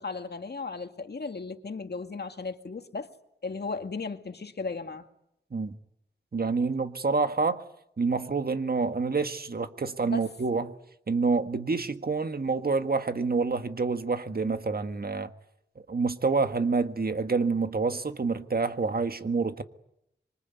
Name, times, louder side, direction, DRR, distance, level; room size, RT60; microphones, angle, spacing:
voice 1, 0.0-3.1 3.4-5.1 10.0-10.3, left 4 dB, 60° left, 2.1 m, -36 dB
voice 2, 6.3-7.6 8.0-10.7 11.1-15.3 15.9-19.6, right 4 dB, 55° right, 1.7 m, -27 dB
26.0 x 24.5 x 9.4 m
wide cardioid pair, 90°, 19 cm